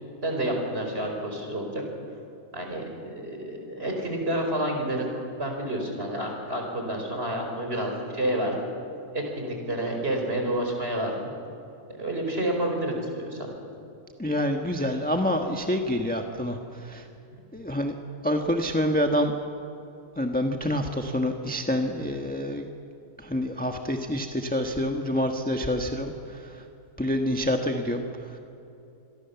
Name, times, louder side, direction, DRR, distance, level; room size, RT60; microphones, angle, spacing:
voice 1, 0.2-1.8 2.5-5.1 5.4-8.7 9.1-11.3 12.0-13.5 17.3-17.4, right 1 dB, 40° right, 2 dB, 5.1 m, -29 dB
voice 2, 14.2-17.1 17.5-17.9 18.2-19.3 20.2-22.7 23.2-26.6 27.0-28.4, left 1 dB, 5° left, 3 dB, 1.2 m, -27 dB
26.5 x 22.5 x 7.1 m, 2.9 s
omnidirectional pair, 1.6 m